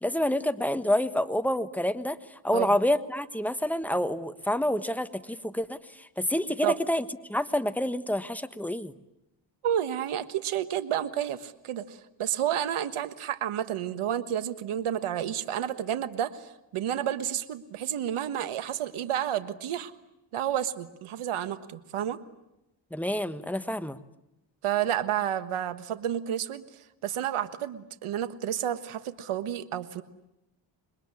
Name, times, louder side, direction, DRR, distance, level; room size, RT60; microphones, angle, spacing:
voice 1, 0.0-2.2 2.4-7.0 7.3-8.9 22.9-24.0, left 1 dB, 5° left, 10 dB, 1.3 m, -28 dB
voice 2, 9.6-19.9 20.3-22.2 24.6-26.6 27.0-30.0, right 10 dB, 85° right, 12 dB, 1.5 m, -30 dB
27.5 x 21.5 x 9.8 m, 0.91 s
cardioid pair, 90°, 49 cm